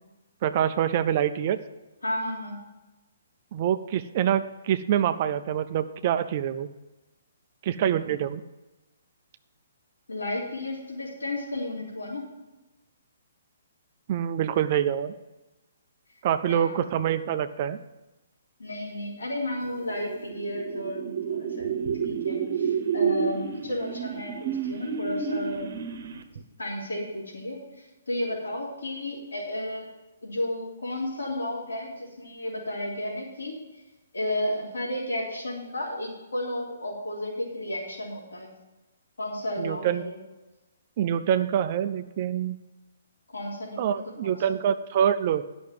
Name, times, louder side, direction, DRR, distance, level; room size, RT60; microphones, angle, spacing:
voice 1, 0.4-1.6 3.5-6.7 7.6-8.4 14.1-15.1 16.2-17.8 39.6-40.0 41.0-42.6 43.8-45.4, right 9 dB, 45° right, 10 dB, 0.5 m, -25 dB
voice 2, 2.0-2.6 10.1-12.3 16.4-16.8 18.6-21.7 22.0-25.7 26.6-29.9 30.2-33.6 34.1-38.5 39.2-40.2 43.3-44.4, left 1 dB, 85° left, -4 dB, 3.3 m, -33 dB
sound 1, 19.9-26.4, right 7 dB, 60° right, 1.1 m, -30 dB
10.5 x 6.1 x 7.5 m, 1.1 s
hypercardioid pair, 135°, 0 cm